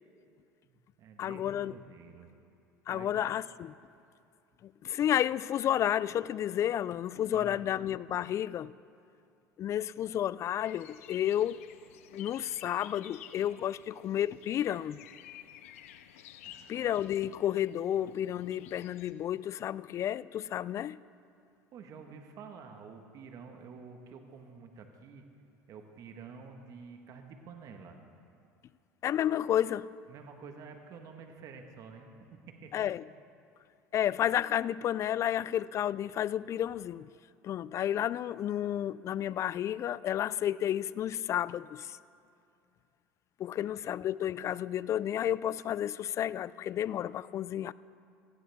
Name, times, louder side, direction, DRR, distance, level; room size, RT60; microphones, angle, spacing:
voice 1, 0.6-2.3 2.9-3.3 7.3-7.7 16.4-16.9 21.7-25.2 25.7-28.0 30.1-32.9 43.5-43.7, right 5 dB, 50° right, 1.5 m, -49 dB
voice 2, 1.2-1.8 2.9-3.4 4.6-8.7 9.6-11.6 12.1-15.0 16.7-21.0 29.0-30.0 32.7-33.0 33.9-37.1 37.4-42.0 43.4-47.7, left 11 dB, 40° left, 0.3 m, -31 dB
sound 1, 10.6-19.1, left 11 dB, 85° left, 0.6 m, -52 dB
18.0 x 15.5 x 3.6 m
supercardioid pair, 90°, 7 cm